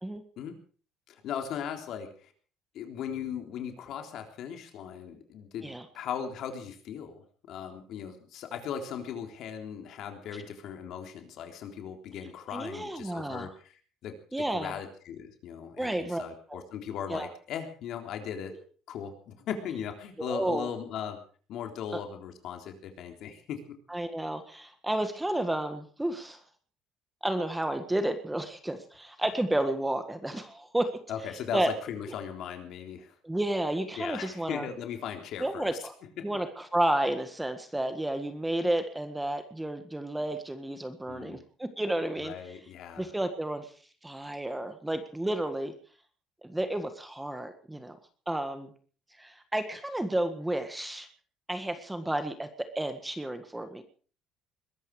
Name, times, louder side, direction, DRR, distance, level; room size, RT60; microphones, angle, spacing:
voice 1, 1.1-2.3 2.7-13.7 14.0-18.5 18.9-21.2 21.5-23.6 31.1-33.1 34.0-35.8 36.2-36.3 41.1-41.4 42.2-43.1, left 8 dB, 60° left, 5 dB, 3.7 m, -38 dB
voice 2, 12.5-13.5 14.3-14.8 15.8-16.2 16.5-16.6 17.1-17.3 20.2-20.7 21.9-22.0 23.9-26.4 27.2-31.0 31.5-31.7 33.2-34.7 35.4-35.9 36.2-42.3 43.0-43.7 44.0-45.7 46.4-48.0 48.3-48.7 49.2-51.1 51.5-53.8, right 1 dB, 5° right, 9 dB, 1.7 m, -31 dB
21.5 x 13.5 x 4.9 m, 0.42 s
cardioid pair, 150°, 0 cm